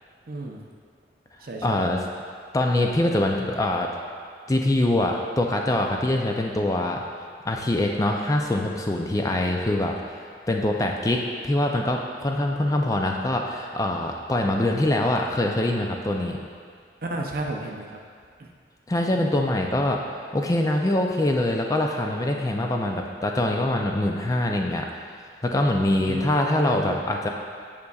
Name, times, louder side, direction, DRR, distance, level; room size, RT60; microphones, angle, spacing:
voice 1, 0.3-0.6 1.4-1.8 17.0-17.9 26.1-26.9, right 1 dB, 50° right, 1 dB, 0.6 m, -32 dB
voice 2, 1.6-2.0 2.5-3.9 4.5-7.0 7.4-10.0 10.5-16.4 18.9-20.0 20.3-24.9 25.4-27.3, left 1 dB, 15° left, 1 dB, 0.4 m, -24 dB
9.6 x 5.2 x 2.3 m, 2.1 s
head